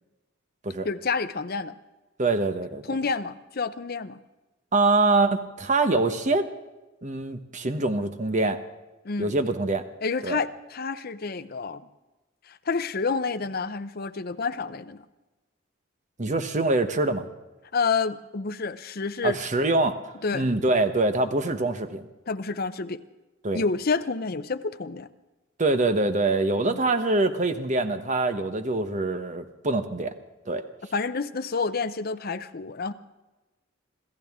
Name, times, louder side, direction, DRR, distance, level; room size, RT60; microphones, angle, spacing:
voice 1, 0.8-1.8 2.9-4.2 9.0-9.4 10.0-11.8 12.5-15.0 17.7-19.4 20.2-20.5 22.3-23.0 23.5-25.1 26.6-26.8 30.9-32.9, left 4 dB, 50° left, 10 dB, 0.7 m, -29 dB
voice 2, 2.2-2.9 4.7-6.5 7.0-8.6 9.2-9.8 10.2-10.4 16.2-17.3 19.2-19.9 20.3-22.1 23.4-23.6 25.6-30.1 30.5-30.6, right 2 dB, 40° right, 9 dB, 1.0 m, -24 dB
26.5 x 14.5 x 3.6 m, 1.1 s
head